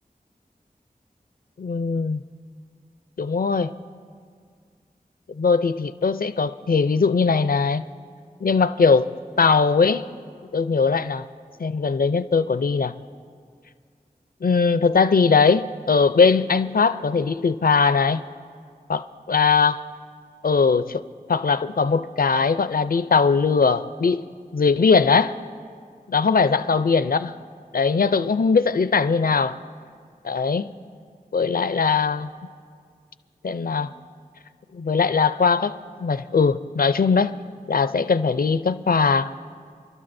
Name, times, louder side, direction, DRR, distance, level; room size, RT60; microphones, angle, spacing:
voice 1, 1.6-2.2 3.2-3.7 5.4-7.8 8.4-9.1 9.4-10.0 10.5-11.2 11.6-12.9 14.4-18.2 18.9-19.8 20.4-21.0 21.3-24.3 24.5-25.4 26.1-27.3 27.7-29.6 30.2-30.7 31.3-32.3 33.4-33.9 34.7-37.4 37.7-39.3, left 5 dB, 70° left, 0.4 m, -20 dB
29.5 x 12.0 x 2.6 m
wide cardioid pair, 45°, 16 cm